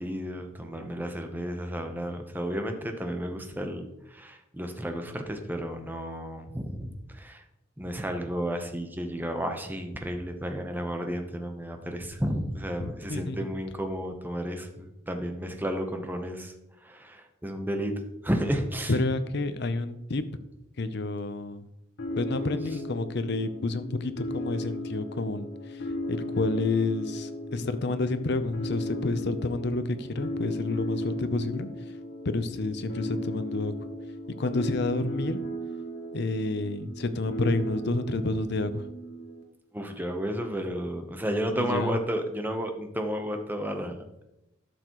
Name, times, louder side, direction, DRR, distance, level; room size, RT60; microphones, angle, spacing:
voice 1, 0.0-7.4 7.8-16.5 16.8-17.9 18.2-19.0 39.7-44.1, equal, 10° right, 5 dB, 0.9 m, -32 dB
voice 2, 12.8-13.5 18.9-20.2 20.8-21.7 22.1-25.8 26.1-31.7 32.2-33.7 34.4-35.4 36.1-38.8 41.5-41.9, left 2 dB, 60° left, 11 dB, 0.7 m, -29 dB
sound 1, 22.0-39.4, left 1 dB, 85° left, 1.4 m, -36 dB
12.0 x 6.7 x 3.1 m, 0.88 s
head